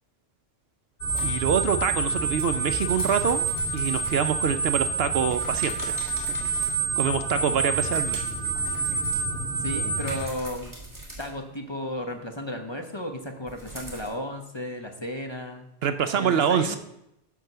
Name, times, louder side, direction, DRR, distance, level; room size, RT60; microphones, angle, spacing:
sound 1, 1.0-10.2, right 4 dB, 50° left, 2.3 m, -27 dB
sound 2, 1.1-7.1 7.6-14.1, right 1 dB, 15° right, 2.5 m, -44 dB
voice 1, 1.2-6.0 6.4-6.5 7.0-8.2 15.8-16.8, right 7 dB, 65° right, 10 dB, 0.8 m, -26 dB
voice 2, 9.6-10.8 11.2-15.7 16.1-16.8, equal, 25° left, 4 dB, 1.0 m, -34 dB
11.0 x 4.6 x 6.7 m, 0.80 s
omnidirectional pair, 1.2 m